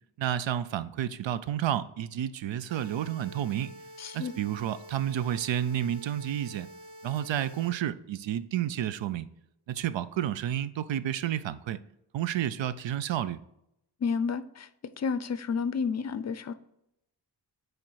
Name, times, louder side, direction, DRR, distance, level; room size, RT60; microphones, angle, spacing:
voice 1, 0.2-3.7 4.1-6.7 7.0-9.3 9.7-11.8 12.1-13.4, right 11 dB, 85° right, 0.6 m, -30 dB
sound 1, 2.7-7.7, equal, 45° right, 1.0 m, -48 dB
voice 2, 4.0-4.3 14.0-14.7 15.0-16.5, left 5 dB, 40° left, 0.5 m, -30 dB
8.7 x 3.2 x 4.6 m
wide cardioid pair, 130°, 43 cm